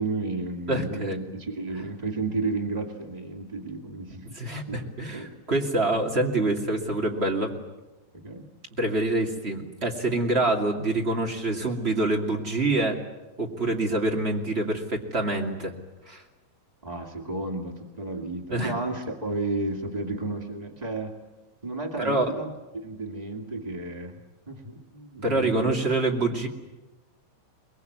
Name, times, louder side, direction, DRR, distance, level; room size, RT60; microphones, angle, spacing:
voice 1, 0.0-4.3 4.7-5.3 8.1-8.5 16.8-21.2 21.6-24.1 24.5-25.7, right 3 dB, 65° right, 2 dB, 0.4 m, -32 dB
voice 2, 0.7-1.2 4.3-7.6 8.8-13.0 13.4-15.7 16.1-16.2 18.5-18.7 22.0-22.3 25.2-26.5, right 2 dB, 20° right, 1 dB, 1.8 m, -26 dB
24.0 x 22.0 x 9.4 m, 1.0 s
omnidirectional pair, 5.1 m